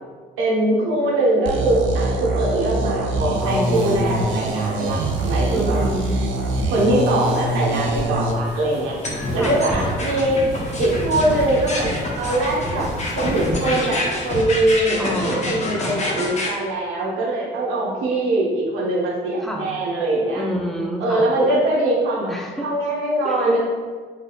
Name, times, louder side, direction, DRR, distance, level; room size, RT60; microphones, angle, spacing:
voice 1, 0.4-5.8 6.7-10.4 10.8-12.9 13.1-20.4 21.0-22.3 22.6-23.6, right 1 dB, 90° right, -4 dB, 1.0 m, -22 dB
sound 1, 1.5-8.3, right 2 dB, 75° right, 0.5 m, -24 dB
sound 2, 3.3-14.5, equal, 35° right, 1.4 m, -34 dB
voice 2, 3.4-4.2 5.5-6.1 9.4-9.6 15.0-16.0 19.4-19.7 20.3-21.3 22.3-22.7 23.2-23.6, equal, ahead, 0 dB, 0.6 m, -28 dB
sound 3, 9.0-16.5, left 1 dB, 35° left, 0.9 m, -27 dB
3.9 x 3.5 x 2.3 m, 1.5 s
cardioid pair, 90°, 20 cm